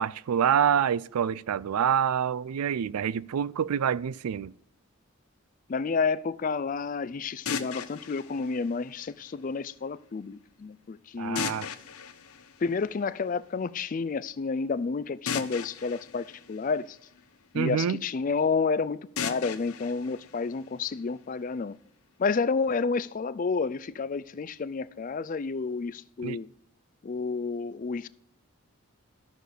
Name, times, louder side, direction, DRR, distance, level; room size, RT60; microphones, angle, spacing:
voice 1, 0.0-4.5 11.2-11.7 17.5-18.0 26.2-26.4, right 8 dB, 90° right, 0.4 m, -26 dB
voice 2, 5.7-11.5 12.6-17.0 17.5-21.8 22.2-26.5 27.0-28.1, left 4 dB, 35° left, 0.3 m, -30 dB
sound 1, 7.5-9.5 11.4-13.3 15.3-17.5 19.2-21.2, left 7 dB, 80° left, 0.8 m, -38 dB
13.5 x 6.4 x 5.0 m
head